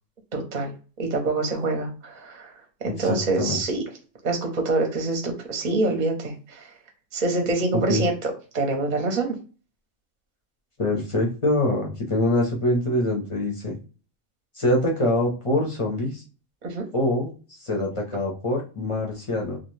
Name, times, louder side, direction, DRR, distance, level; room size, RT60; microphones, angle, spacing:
voice 1, 0.3-2.5 2.8-3.8 4.2-6.7 7.1-9.4 16.6-16.9, right 3 dB, 45° right, 3 dB, 0.6 m, -26 dB
voice 2, 3.0-3.6 7.7-8.0 10.8-13.8 14.5-16.2 16.9-17.3 17.6-19.6, left 1 dB, 35° left, -1 dB, 0.5 m, -24 dB
2.4 x 2.2 x 3.1 m, 0.36 s
omnidirectional pair, 1.4 m